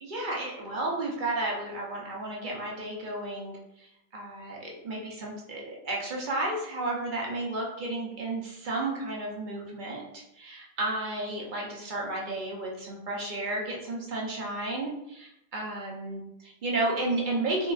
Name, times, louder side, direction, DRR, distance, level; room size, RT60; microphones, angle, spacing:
voice 1, 0.0-10.0 10.3-17.7, right 2 dB, 50° right, -2 dB, 0.7 m, -32 dB
3.5 x 2.3 x 2.3 m, 0.81 s
omnidirectional pair, 1.2 m